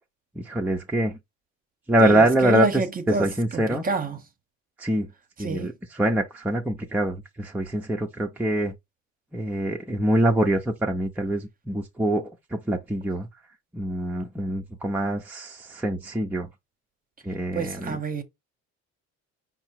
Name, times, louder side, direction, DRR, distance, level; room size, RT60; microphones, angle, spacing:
voice 1, 0.4-1.2 1.9-3.8 4.8-5.1 5.4-8.7 9.3-13.3 13.7-16.5 17.2-18.0, right 1 dB, 5° right, 0.6 m, -24 dB
voice 2, 2.0-4.2 5.4-5.7 17.5-18.2, right 4 dB, 25° right, 0.9 m, -28 dB
4.7 x 2.0 x 4.5 m
supercardioid pair, 85°, 31 cm